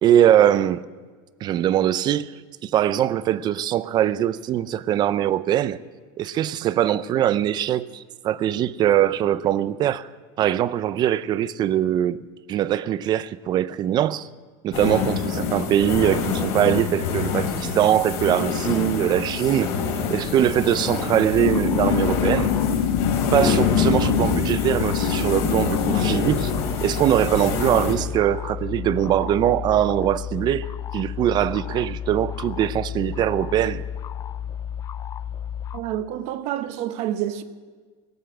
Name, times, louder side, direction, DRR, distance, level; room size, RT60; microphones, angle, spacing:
voice 1, 0.0-0.8 1.4-2.3 2.6-5.8 6.2-10.1 10.4-14.3 14.6-19.7 20.1-22.5 23.3-26.5 26.8-30.7 30.9-33.8, right 11 dB, 30° right, 0.5 m, -22 dB
sound 1, 14.7-27.9, left 5 dB, 60° left, 3.2 m, -26 dB
sound 2, 21.3-35.8, left 9 dB, 25° left, 0.5 m, -32 dB
sound 3, 21.4-27.0, left 8 dB, 90° left, 1.3 m, -26 dB
voice 2, 35.7-37.4, right 11 dB, 55° right, 1.0 m, -28 dB
17.5 x 8.1 x 8.8 m
supercardioid pair, 140°, 13 cm